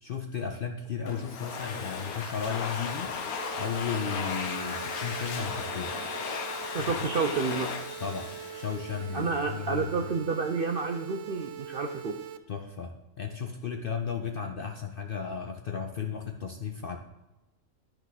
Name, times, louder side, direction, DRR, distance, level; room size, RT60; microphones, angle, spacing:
voice 1, 0.0-3.2 3.6-6.0 6.8-6.9 8.0-10.1 12.5-17.0, left 6 dB, 60° left, 5 dB, 0.5 m, -35 dB
Domestic sounds home sounds, 1.1-9.5, left 5 dB, 80° left, 1.4 m, -36 dB
sound 1, 3.4-12.4, right 10 dB, 85° right, 1.1 m, -43 dB
voice 2, 6.7-7.7 9.1-12.1, right 4 dB, 65° right, 4 dB, 0.5 m, -30 dB
12.5 x 4.4 x 4.0 m, 1.0 s
omnidirectional pair, 1.5 m